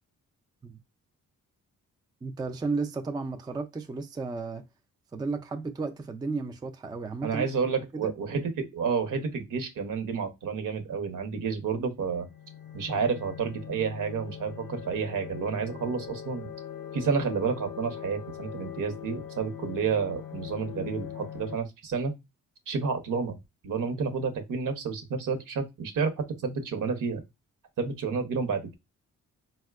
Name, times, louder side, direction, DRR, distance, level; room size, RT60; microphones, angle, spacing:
voice 1, 2.2-4.6 5.1-7.5 7.9-8.1, right 4 dB, 15° right, 0.3 m, -33 dB
voice 2, 7.2-12.3 12.7-16.5 16.9-22.1 22.7-23.4 23.6-27.2 27.8-28.7, right 5 dB, 70° right, 0.9 m, -30 dB
sound 1, 12.0-21.6, left 9 dB, 90° left, 0.5 m, -41 dB
4.1 x 2.2 x 2.3 m
cardioid pair, 90°, 33 cm